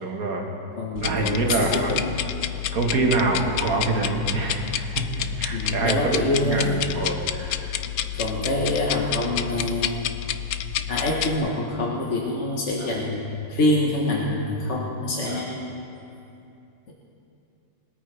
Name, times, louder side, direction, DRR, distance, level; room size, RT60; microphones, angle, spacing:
voice 1, 0.0-0.5 1.0-1.9 2.7-7.8 12.8-13.0 15.3-15.4, right 3 dB, 55° right, 0 dB, 1.9 m, -26 dB
voice 2, 0.8-2.2 5.5-6.8 8.1-9.9 10.9-15.6 16.9-17.0, left 1 dB, 45° left, -2 dB, 1.3 m, -25 dB
sound 1, 1.0-11.4, left 11 dB, 75° left, 0.7 m, -29 dB
21.0 x 13.5 x 3.3 m, 2.7 s
omnidirectional pair, 1.8 m